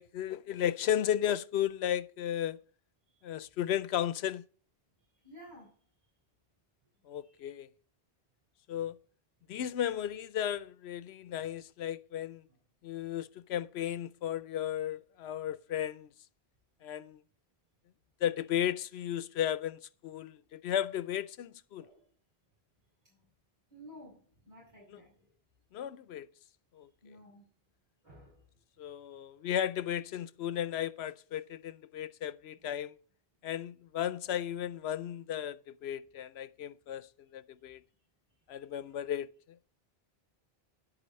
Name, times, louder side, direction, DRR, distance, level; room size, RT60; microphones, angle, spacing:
voice 1, 0.0-2.6 3.2-4.4 7.1-7.7 8.7-9.0 9.5-12.4 12.8-16.1 16.8-17.2 18.2-21.9 24.9-25.0 25.7-26.3 26.7-26.9 28.8-32.9 33.4-37.8 38.5-39.3, left 10 dB, 85° left, 0.9 m, -34 dB
voice 2, 5.1-5.8 7.1-7.4 9.5-9.6 12.5-12.6 20.3-20.4 21.8-22.1 23.0-23.3 23.7-25.3 27.0-27.5 28.0-28.4 37.7-37.8 38.8-38.9, equal, 45° right, 6.2 m, -55 dB
10.5 x 8.0 x 4.0 m
omnidirectional pair, 1.0 m